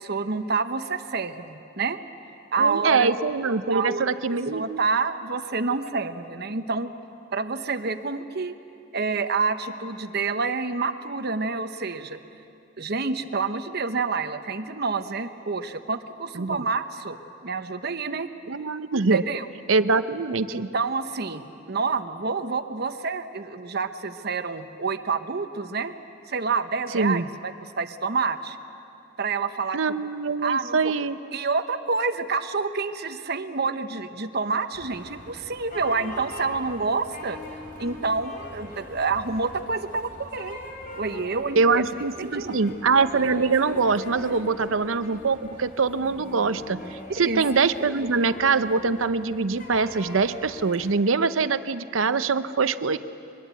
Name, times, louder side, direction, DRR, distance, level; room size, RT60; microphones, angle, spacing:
voice 1, 0.0-2.0 2.5-3.1 3.7-4.0 4.5-6.9 7.3-8.5 8.9-12.2 12.8-17.2 17.4-18.3 19.1-19.5 20.5-25.9 26.3-28.6 29.2-29.8 30.4-30.9 31.3-37.4 37.8-40.6 41.0-41.8 42.2-42.6 47.2-47.4, right 4 dB, 55° right, 10 dB, 1.0 m, -28 dB
voice 2, 2.6-4.8 16.3-16.7 18.5-19.2 19.7-20.7 26.9-27.3 29.7-31.2 41.6-53.0, right 4 dB, 85° right, 12 dB, 0.7 m, -23 dB
sound 1, 34.7-50.9, left 1 dB, 45° left, 3.1 m, -42 dB
23.0 x 21.0 x 8.3 m, 2.7 s
head